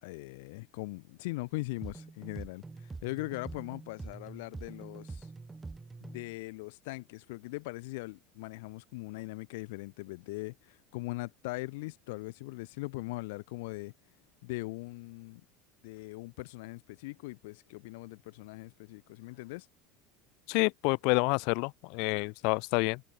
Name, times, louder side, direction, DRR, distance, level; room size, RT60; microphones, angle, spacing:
voice 1, 0.0-5.3 6.0-13.9 14.4-15.4 15.8-19.7, left 23 dB, 80° left, 2.8 m, -40 dB
sound 1, 1.8-6.3, right 3 dB, 10° right, 1.7 m, -45 dB
voice 2, 20.5-23.0, left 33 dB, 65° left, 0.7 m, -28 dB
supercardioid pair, 145°, 0 cm